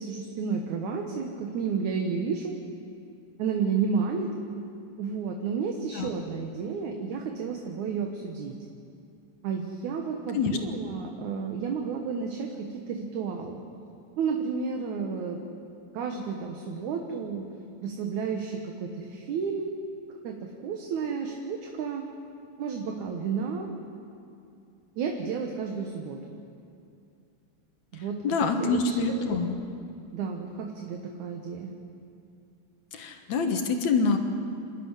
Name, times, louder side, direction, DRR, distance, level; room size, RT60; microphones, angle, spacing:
voice 1, 0.0-2.6 3.4-4.3 5.0-8.6 9.4-13.6 14.2-15.4 15.9-17.5 17.8-19.8 20.2-22.1 22.6-23.7 25.0-26.2 27.9-29.4 30.1-31.7, right 5 dB, 65° right, 3 dB, 2.5 m, -31 dB
voice 2, 28.2-29.6 32.9-34.2, left 4 dB, 65° left, 4 dB, 2.4 m, -26 dB
27.0 x 12.5 x 9.8 m, 2.5 s
omnidirectional pair, 4.0 m